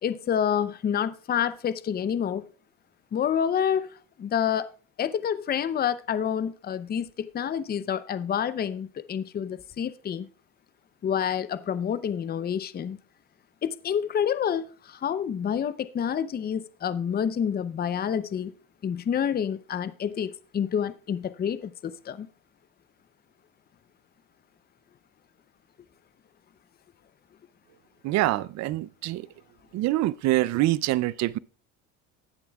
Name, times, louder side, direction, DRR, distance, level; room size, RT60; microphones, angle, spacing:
voice 1, 0.0-2.5 3.1-3.9 4.2-4.7 5.0-10.3 11.0-13.0 13.6-18.5 18.8-22.3, left 8 dB, 25° left, 0.6 m, -28 dB
voice 2, 28.0-29.3 29.7-31.4, right 16 dB, 45° right, 0.5 m, -25 dB
19.0 x 6.9 x 2.3 m
hypercardioid pair, 85°, 39 cm